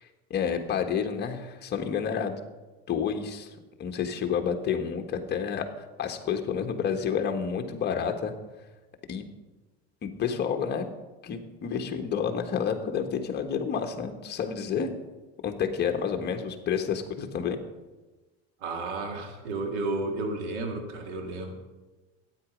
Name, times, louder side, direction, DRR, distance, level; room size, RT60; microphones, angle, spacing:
voice 1, 0.3-2.3 2.9-3.5 3.8-5.6 6.0-8.3 9.1-9.2 10.0-10.8 11.2-14.9 15.4-17.6, left 7 dB, 30° left, 4 dB, 1.3 m, -29 dB
voice 2, 18.6-21.5, right 2 dB, 90° right, 4 dB, 1.9 m, -32 dB
12.5 x 9.2 x 5.1 m, 1.2 s
supercardioid pair, 140°, 32 cm